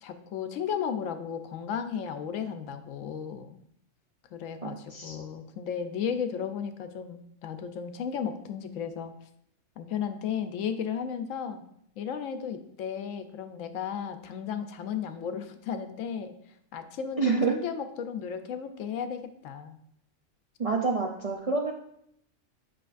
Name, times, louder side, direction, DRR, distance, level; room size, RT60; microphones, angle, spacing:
voice 1, 0.0-3.5 4.3-9.1 9.8-11.6 12.0-16.3 16.7-19.8, left 7 dB, 90° left, 9 dB, 1.0 m, -34 dB
voice 2, 4.6-5.2 17.2-17.5 20.6-21.7, right 4 dB, 60° right, 0 dB, 0.3 m, -27 dB
7.5 x 5.2 x 2.5 m, 0.72 s
omnidirectional pair, 1.3 m